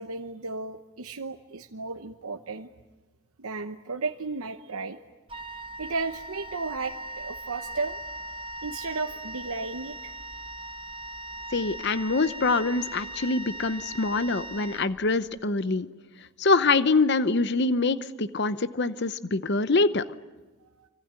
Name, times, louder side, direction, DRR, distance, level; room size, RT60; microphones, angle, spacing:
voice 1, 0.0-2.7 3.4-5.0 5.8-8.0 8.6-10.1 20.6-20.9, right 3 dB, 80° right, 5 dB, 1.0 m, -34 dB
Wind instrument woodwind instrument, 5.3-15.4, right 1 dB, 25° right, 0.9 m, -39 dB
voice 2, 11.5-15.9 16.4-20.0, left 3 dB, 50° left, 13 dB, 0.8 m, -24 dB
25.5 x 25.0 x 9.1 m, 1.2 s
head